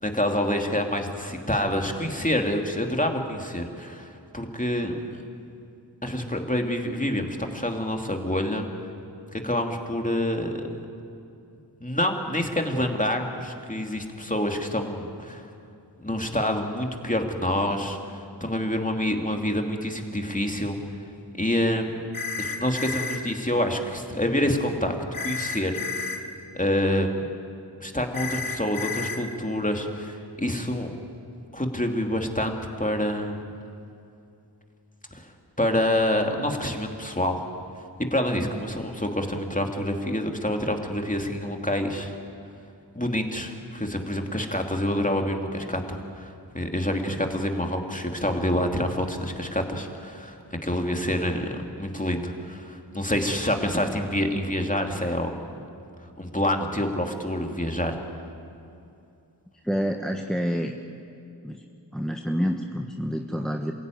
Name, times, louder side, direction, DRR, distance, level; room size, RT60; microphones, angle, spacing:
voice 1, 0.0-5.2 6.0-8.7 9.3-10.8 11.8-15.5 16.0-20.8 21.4-21.9 22.4-24.9 25.2-26.1 26.5-27.2 27.8-30.9 31.5-33.4 35.1-35.3 35.6-37.4 38.1-42.1 42.9-50.4 50.6-51.5 51.8-55.6 56.2-58.0, left 1 dB, 20° left, 3 dB, 2.6 m, -27 dB
sound 1, 22.1-23.2 25.1-26.2 28.1-29.2, left 5 dB, 50° left, 2.6 m, -31 dB
voice 2, 59.6-60.7 61.4-61.6 61.9-63.7, equal, ahead, 3 dB, 1.3 m, -28 dB
27.5 x 16.5 x 9.3 m, 2.6 s
wide cardioid pair, 45°, 42 cm